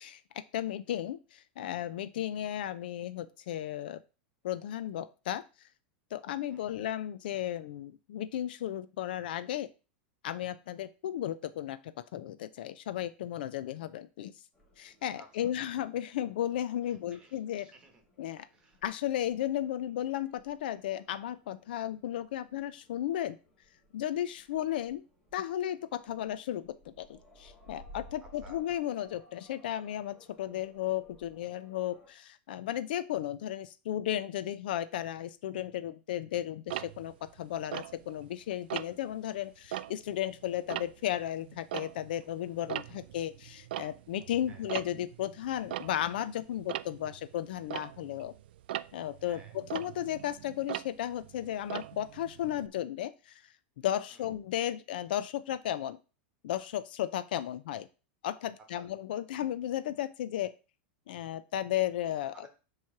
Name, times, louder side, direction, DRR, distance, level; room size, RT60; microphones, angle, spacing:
voice 1, 0.5-4.0 4.4-5.4 6.1-9.7 10.2-14.3 14.8-17.7 18.2-18.5 18.8-23.4 23.9-25.0 25.3-37.1 37.4-48.3 48.9-53.4 53.8-56.0 56.4-57.9 58.2-60.5 61.1-62.5, left 12 dB, 60° left, 13 dB, 0.5 m, -34 dB
voice 2, 6.5-6.8 15.1-15.5 16.8-18.0 18.5-18.8 28.4-28.6 42.9-43.0 44.5-44.7 49.3-49.6 54.1-54.3 58.8-58.9 62.3-62.5, right 2 dB, 15° right, 5 dB, 1.3 m, -57 dB
sound 1, 14.5-32.1, left 1 dB, 5° left, 1.3 m, -59 dB
Tick-tock, 36.7-38.3 38.7-39.1 39.6-42.3 42.5-52.7, right 13 dB, 70° right, 0.4 m, -41 dB
7.4 x 3.1 x 5.7 m, 0.33 s
supercardioid pair, 180°, 6 cm